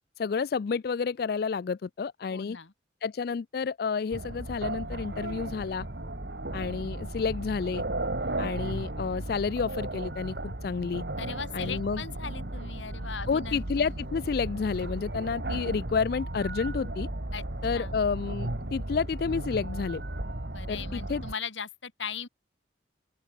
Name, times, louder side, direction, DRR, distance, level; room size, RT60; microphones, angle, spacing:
voice 1, 0.2-2.6 3.0-5.9 6.5-7.8 8.4-11.0 11.5-12.0 13.3-17.1 17.6-20.0 20.7-21.2, left 5 dB, 50° left, 0.3 m, -30 dB
voice 2, 2.3-2.7 11.2-13.9 17.3-17.4 17.7-18.0 20.5-22.3, left 6 dB, 80° left, 1.8 m, -39 dB
sound 1, 4.1-21.3, right 1 dB, 60° right, 2.1 m, -35 dB
sound 2, 11.4-12.2 13.2-14.3 14.6-15.3, right 1 dB, 75° right, 7.9 m, -59 dB
open air
head